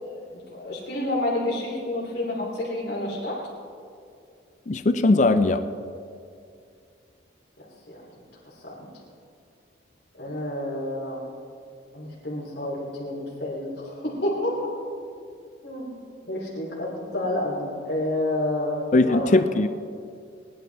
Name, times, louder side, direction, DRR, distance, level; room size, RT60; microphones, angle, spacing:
voice 1, 0.0-3.4 7.9-8.0 8.6-8.7 10.2-11.2 11.9-14.7 15.6-15.9 16.3-19.3, left 1 dB, 60° left, -5 dB, 3.2 m, -29 dB
voice 2, 4.7-5.6 18.9-19.7, left 2 dB, 40° left, 10 dB, 0.4 m, -19 dB
20.0 x 11.0 x 3.5 m, 2.4 s
head